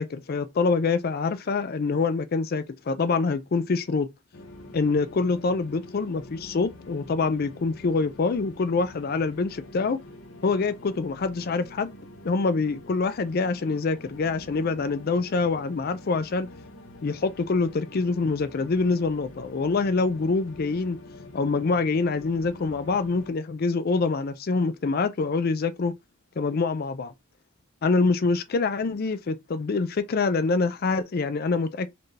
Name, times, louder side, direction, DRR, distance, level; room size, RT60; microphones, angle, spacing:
voice 1, 0.0-4.1 4.7-10.0 10.4-12.0 12.2-16.5 17.0-21.0 21.3-25.9 26.4-27.1 27.8-31.9, left 4 dB, 45° left, 0.4 m, -25 dB
sound 1, 4.3-23.3, left 1 dB, 65° left, 0.8 m, -46 dB
4.3 x 2.7 x 3.2 m
head